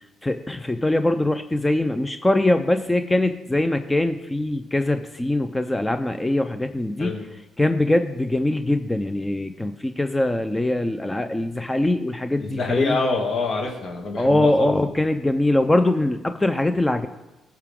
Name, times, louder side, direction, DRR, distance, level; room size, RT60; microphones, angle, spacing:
voice 1, 0.2-7.1 7.6-13.0 14.2-17.1, left 1 dB, 15° left, 8 dB, 0.6 m, -22 dB
voice 2, 12.4-14.8, left 3 dB, 60° left, 0 dB, 2.4 m, -25 dB
16.0 x 5.9 x 3.7 m, 1.0 s
cardioid pair, 90°, 0 cm